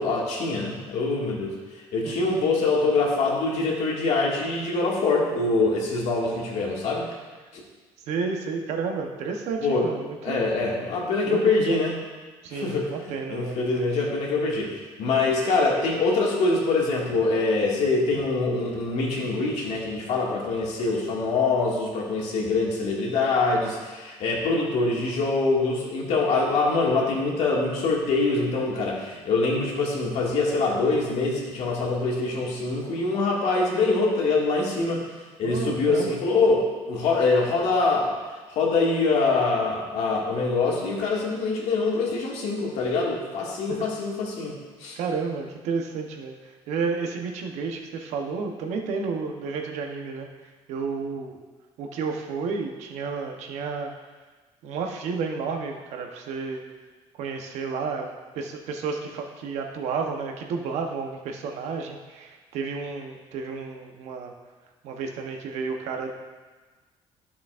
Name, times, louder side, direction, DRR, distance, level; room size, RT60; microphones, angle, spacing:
voice 1, 0.0-7.1 7.5-7.6 9.6-9.9 10.2-11.9 12.5-35.0 35.4-38.2 38.5-45.0, left 3 dB, 75° left, -3 dB, 2.1 m, -24 dB
voice 2, 8.1-10.5 11.3-11.8 12.4-13.9 15.0-15.1 35.4-36.1 43.7-43.9 45.0-50.3 50.7-51.4 51.8-53.9 54.6-56.6 57.2-58.1 58.3-64.3 64.8-66.2, right 5 dB, 85° right, 3 dB, 1.0 m, -31 dB
12.0 x 7.1 x 2.5 m, 1.3 s
cardioid pair, 110°, 11 cm